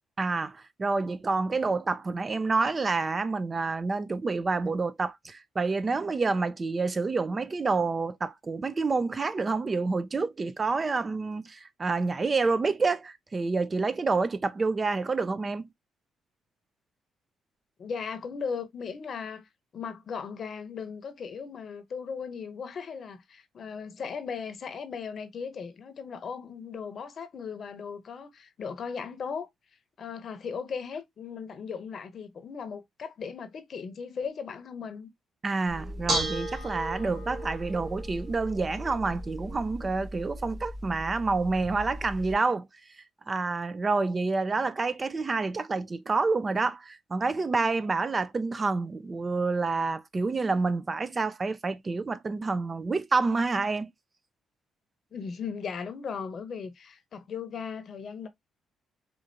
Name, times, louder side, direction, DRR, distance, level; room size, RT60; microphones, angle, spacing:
voice 1, 0.2-15.7 35.4-42.7 43.0-53.9, right 3 dB, 30° right, 0.4 m, -28 dB
voice 2, 17.8-29.5 30.0-35.1 55.1-58.3, left 6 dB, 55° left, 0.8 m, -37 dB
Bell / Dishes pots and pans, 35.7-42.3, right 1 dB, 50° right, 1.6 m, -36 dB
4.3 x 2.5 x 2.6 m
cardioid pair, 90°, 0 cm